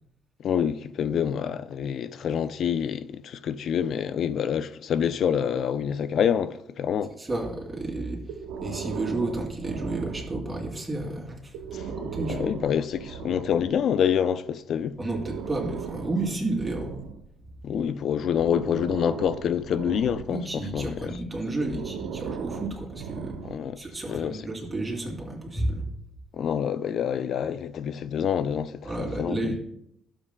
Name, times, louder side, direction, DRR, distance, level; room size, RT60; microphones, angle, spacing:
voice 1, 0.4-7.1 11.7-11.9 12.3-15.0 17.6-21.2 23.4-24.4 26.3-29.6, left 8 dB, 50° left, 0.4 m, -27 dB
voice 2, 7.2-8.2 8.6-11.4 12.0-12.6 15.0-16.9 20.3-23.4 23.8-25.8 28.8-29.6, right 2 dB, 15° right, 2.7 m, -31 dB
Breathing, 8.3-10.7 11.5-13.8 14.9-17.8 18.4-20.6 21.5-23.8, right 6 dB, 80° right, 0.8 m, -38 dB
17.5 x 7.4 x 2.2 m
cardioid pair, 150°, 0 cm